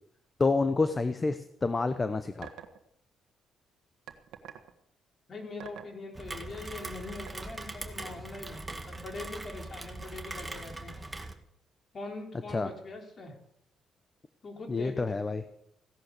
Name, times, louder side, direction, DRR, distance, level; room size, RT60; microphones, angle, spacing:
voice 1, 0.4-2.5 12.5-12.7 14.7-15.4, left 3 dB, 25° left, 10 dB, 0.9 m, -28 dB
sound 1, 2.4-2.8 4.1-4.7 5.6-6.0 7.3-7.4, right 10 dB, 85° right, 1.5 m, -45 dB
voice 2, 5.3-10.9 11.9-13.4 14.4-15.2, left 3 dB, 45° left, 3 dB, 4.1 m, -42 dB
Rain, 6.1-11.3, right 2 dB, 15° right, 1.8 m, -41 dB
16.0 x 11.0 x 6.8 m, 0.75 s
cardioid pair, 90°, 0 cm